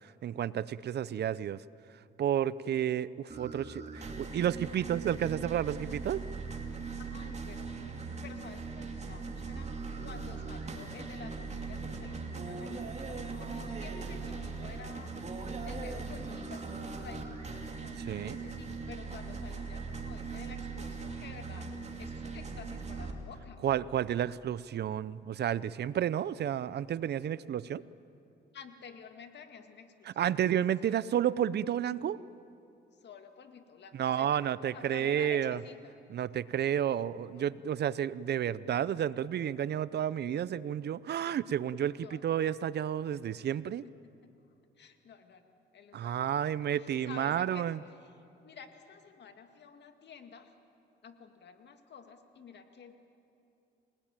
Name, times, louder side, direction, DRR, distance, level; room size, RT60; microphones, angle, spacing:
voice 1, 0.2-1.6 2.2-6.2 18.1-18.4 23.6-27.8 30.1-32.2 34.0-35.6 36.1-43.8 45.9-47.8, right 10 dB, 55° right, 18 dB, 0.6 m, -31 dB
sound 1, 3.3-23.1, right 4 dB, 35° right, 2.7 m, -40 dB
voice 2, 7.0-15.1 15.6-23.7 28.5-30.3 30.8-31.0 33.0-36.0 36.7-37.5 42.0-42.2 44.8-47.7 48.0-48.1 48.4-50.5 51.0-52.9, left 6 dB, 60° left, 7 dB, 2.2 m, -51 dB
28.5 x 19.0 x 9.0 m, 2.7 s
cardioid pair, 90°, 20 cm